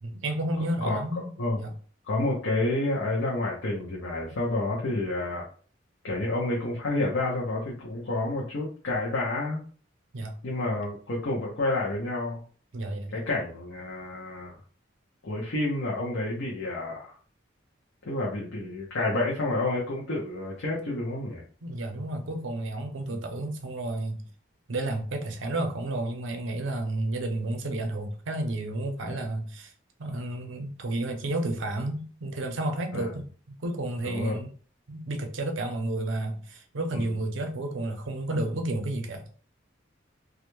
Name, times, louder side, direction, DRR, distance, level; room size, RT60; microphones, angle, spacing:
voice 1, 0.0-1.3 1.6-1.7 10.1-10.4 12.7-13.2 21.6-24.3 24.7-29.7 30.0-33.3 33.6-34.5 34.9-39.3, right 1 dB, 75° right, 0.5 m, -31 dB
voice 2, 2.0-5.5 6.0-9.6 10.4-12.4 13.1-14.5 15.2-17.1 18.0-21.4 23.1-23.2 29.0-29.3 32.9-33.2 34.0-34.4 36.9-37.2, left 2 dB, 75° left, 0.7 m, -29 dB
2.4 x 2.1 x 3.0 m
head